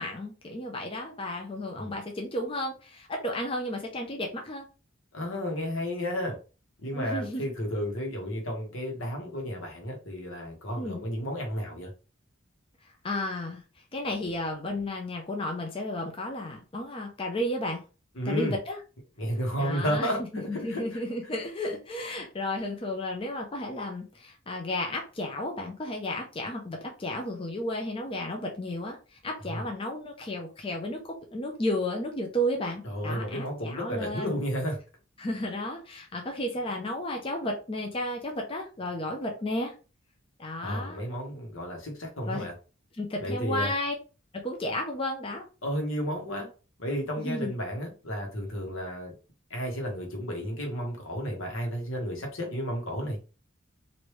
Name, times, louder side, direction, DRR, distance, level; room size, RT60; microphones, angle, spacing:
voice 1, 0.0-4.6 6.9-7.4 10.8-11.0 13.0-13.6 13.9-17.8 18.3-18.8 19.6-20.1 20.5-31.0 31.3-34.4 35.2-39.7 40.4-41.0 42.2-42.5 43.0-43.9 44.3-45.4 47.2-47.5, left 1 dB, 25° left, 0.5 m, -33 dB
voice 2, 5.1-6.4 6.8-11.9 18.1-18.5 19.2-21.0 29.5-29.6 32.8-34.8 40.6-42.5 43.2-43.7 45.6-46.5 46.8-49.1 49.5-53.2, equal, 80° left, 1.2 m, -32 dB
3.2 x 2.6 x 3.1 m
head